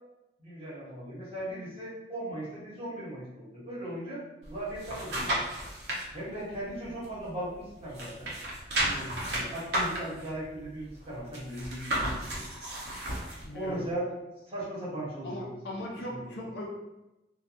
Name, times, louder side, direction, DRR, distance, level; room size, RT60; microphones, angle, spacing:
voice 1, 0.4-4.2 4.5-5.4 6.1-8.3 8.8-12.1 13.5-14.1 14.5-15.5 15.8-16.2, right 1 dB, 30° right, -8 dB, 1.0 m, -38 dB
sound 1, 4.4-6.0 6.5-7.6 7.9-13.4 13.9-14.0, right 1 dB, 60° right, 0.7 m, -33 dB
voice 2, 13.4-13.9 15.2-16.7, left 1 dB, 65° left, -2 dB, 0.5 m, -38 dB
2.6 x 2.3 x 2.5 m, 0.95 s
head